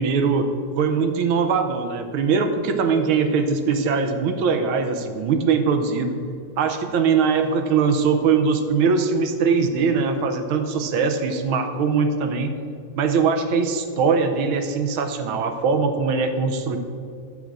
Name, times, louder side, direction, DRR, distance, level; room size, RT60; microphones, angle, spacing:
voice 1, 0.0-6.2 6.6-12.5 13.0-16.8, right 5 dB, 75° right, 7 dB, 1.6 m, -21 dB
10.5 x 3.8 x 7.5 m, 2.3 s
omnidirectional pair, 2.4 m